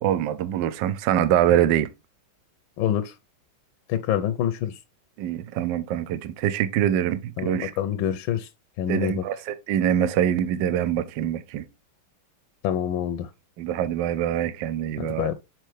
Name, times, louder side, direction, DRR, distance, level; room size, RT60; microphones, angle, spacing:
voice 1, 0.0-1.9 5.2-7.7 8.9-11.6 13.6-15.3, right 10 dB, 70° right, 1.2 m, -24 dB
voice 2, 2.8-3.1 3.9-4.8 7.4-8.5 8.8-9.2 12.6-13.3 15.0-15.3, left 10 dB, 75° left, 1.4 m, -26 dB
7.5 x 4.7 x 3.2 m
omnidirectional pair, 2.2 m